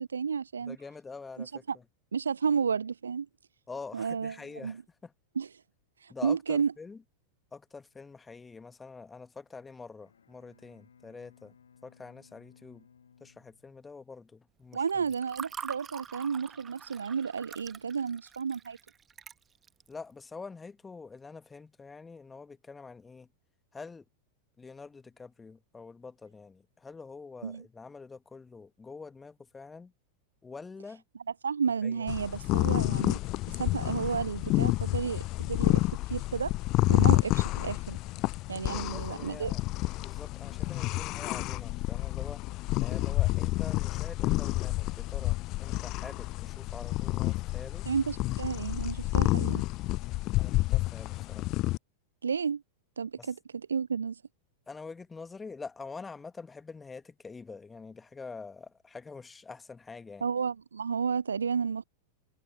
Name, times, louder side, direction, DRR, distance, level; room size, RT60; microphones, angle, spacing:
voice 1, 0.0-0.8 1.7-1.8 2.1-3.3 3.9-4.3 4.6-4.8 5.4-5.5 6.0-6.7 14.7-18.8 27.4-27.6 31.4-33.2 33.6-35.8 36.1-36.5 36.9-38.0 38.5-39.5 47.9-49.6 52.2-52.6 53.0-54.2 60.2-61.8, right 6 dB, 70° right, 0.4 m, -31 dB
voice 2, 0.6-1.8 3.7-5.1 6.1-7.0 7.5-11.5 11.8-12.9 13.2-14.8 19.9-23.3 23.7-24.0 24.6-29.9 30.4-31.0 31.8-32.1 38.7-39.6 40.0-42.4 42.7-47.9 50.4-51.5 53.2-53.3 54.7-60.2, left 4 dB, 15° left, 1.6 m, -46 dB
Bowed string instrument, 9.9-14.3, left 7 dB, 70° left, 1.9 m, -61 dB
Water / Fill (with liquid), 14.7-19.9, right 7 dB, 20° right, 1.3 m, -44 dB
sound 1, 32.1-51.8, left 19 dB, 40° left, 0.4 m, -29 dB
figure-of-eight pair, 90°, 0 cm